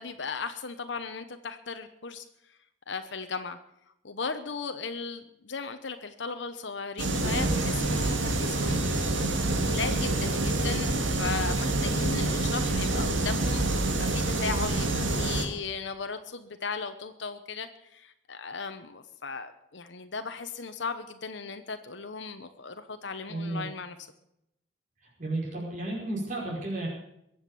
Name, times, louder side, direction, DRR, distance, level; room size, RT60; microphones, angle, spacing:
voice 1, 0.0-2.3 2.9-3.6 4.0-9.1 9.6-24.0, left 5 dB, 70° left, 8 dB, 0.9 m, -36 dB
sound 1, 7.0-15.5, right 2 dB, 90° right, 2.1 m, -27 dB
voice 2, 7.1-7.6 23.3-23.7 25.2-26.9, right 2 dB, 45° right, -4 dB, 5.3 m, -33 dB
22.0 x 8.0 x 6.9 m, 0.80 s
head